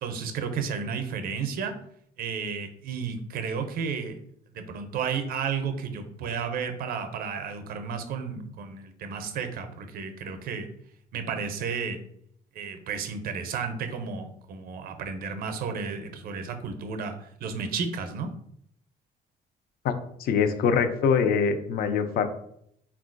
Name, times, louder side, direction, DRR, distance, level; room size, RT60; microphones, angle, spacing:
voice 1, 0.0-1.7 2.2-4.2 4.5-10.7 11.1-12.0 12.5-17.1 17.4-18.3, right 6 dB, 60° right, 7 dB, 0.5 m, -32 dB
voice 2, 20.2-22.3, left 6 dB, 60° left, 8 dB, 0.4 m, -23 dB
3.6 x 2.3 x 2.5 m, 0.71 s
cardioid pair, 110°, 17 cm